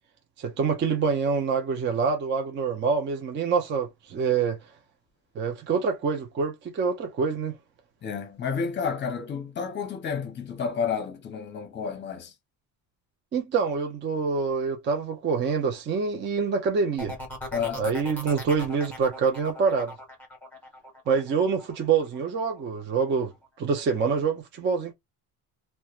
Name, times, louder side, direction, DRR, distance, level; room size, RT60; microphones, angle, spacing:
voice 1, 0.4-4.6 5.4-7.5 13.3-17.2 17.8-19.9 21.1-23.3 23.6-24.9, right 5 dB, 30° right, 0.4 m, -26 dB
voice 2, 8.0-12.3 17.5-17.9, left 6 dB, 30° left, 0.7 m, -30 dB
sound 1, 17.0-22.6 23.0-23.5, left 1 dB, 5° left, 1.0 m, -40 dB
2.9 x 2.1 x 2.3 m
cardioid pair, 145°, 36 cm